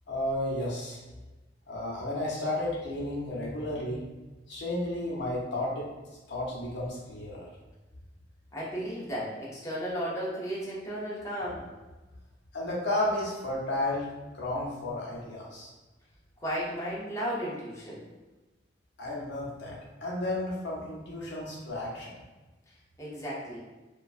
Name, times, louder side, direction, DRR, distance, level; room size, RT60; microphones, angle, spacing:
voice 1, 0.1-1.0 1.7-4.0 4.5-5.9 6.3-7.4 12.5-15.7 19.0-22.1, left 1 dB, 65° left, -4 dB, 0.7 m, -32 dB
voice 2, 8.5-11.7 16.4-18.0 23.0-23.6, equal, 15° left, -8 dB, 0.7 m, -34 dB
2.9 x 2.2 x 2.4 m, 1.2 s
head